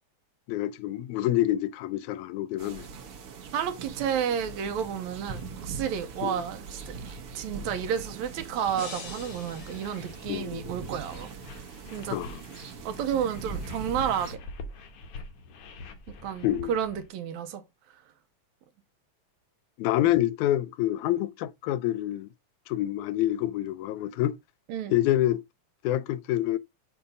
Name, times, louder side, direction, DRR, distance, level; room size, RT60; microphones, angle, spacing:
voice 1, 0.5-2.9 6.2-6.4 10.3-10.7 12.1-12.4 16.4-16.7 19.8-22.3 22.7-24.4 24.9-25.4 25.8-26.6, left 14 dB, 85° left, 2.0 m, -27 dB
sound 1, 2.6-14.4, right 5 dB, 60° right, 1.8 m, -42 dB
voice 2, 3.5-11.3 11.9-12.2 12.9-14.4 16.2-17.6 24.7-24.9, right 8 dB, 80° right, 1.9 m, -31 dB
sound 2, 4.2-17.1, left 2 dB, 65° left, 1.6 m, -46 dB
sound 3, 8.7-10.9, left 5 dB, 50° left, 1.3 m, -45 dB
6.9 x 2.7 x 5.0 m
omnidirectional pair, 3.4 m